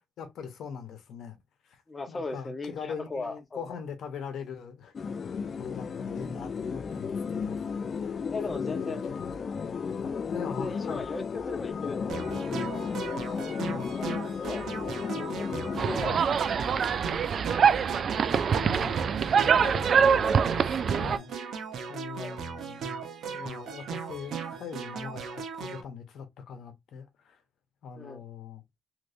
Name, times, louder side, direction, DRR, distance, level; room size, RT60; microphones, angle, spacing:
voice 1, 0.2-1.4 1.7-1.8 2.1-5.2 5.4-8.1 8.5-9.0 9.7-11.0 13.2-14.2 15.0-15.6 16.0-16.2 18.6-18.9 19.4-21.3 21.9-22.9 23.3-27.4 27.8-28.6, left 6 dB, 75° left, 1.0 m, -42 dB
voice 2, 1.9-3.7 8.3-9.0 10.4-12.3 14.4-14.7 15.3-15.4 15.9-16.2 16.6-16.8 22.1-22.4 27.9-28.2, left 3 dB, 25° left, 0.9 m, -37 dB
sound 1, 4.9-16.0, left 6 dB, 45° left, 0.4 m, -34 dB
sound 2, 12.1-25.8, right 6 dB, 70° right, 0.9 m, -37 dB
sound 3, 15.8-21.2, right 6 dB, 55° right, 0.4 m, -24 dB
3.2 x 3.1 x 2.6 m
cardioid pair, 90°, 0 cm